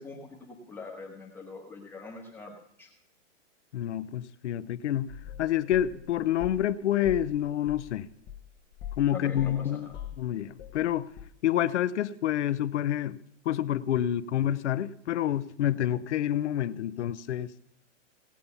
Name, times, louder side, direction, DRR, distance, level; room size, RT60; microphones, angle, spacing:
voice 1, 0.0-2.9 9.1-10.0, left 4 dB, 5° left, 1.1 m, -43 dB
voice 2, 3.7-5.1 5.4-8.1 9.0-9.9 10.2-11.1 11.4-13.2 13.5-17.5, left 11 dB, 70° left, 0.8 m, -28 dB
sound 1, 5.1-6.7 7.0-9.1 9.4-10.9 11.2-11.3, left 10 dB, 25° left, 0.8 m, -42 dB
18.0 x 8.6 x 5.5 m
hypercardioid pair, 160°, 37 cm